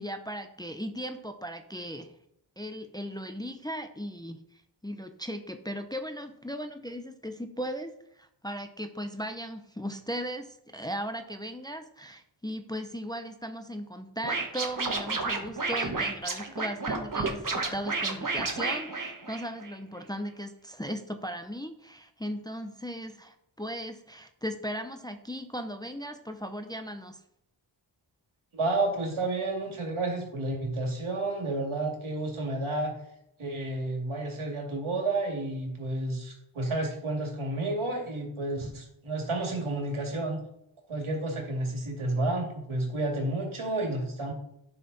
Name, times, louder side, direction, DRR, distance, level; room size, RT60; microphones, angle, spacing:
voice 1, 0.0-2.1 2.6-4.4 4.8-27.2, equal, 10° left, 7 dB, 0.6 m, -37 dB
Scratching (performance technique), 14.2-19.7, right 3 dB, 40° right, 1.4 m, -31 dB
voice 2, 28.5-32.9 33.4-40.4 40.9-44.3, right 2 dB, 80° right, 1 dB, 2.5 m, -31 dB
11.0 x 5.7 x 4.1 m, 0.76 s
wide cardioid pair, 80°, 48 cm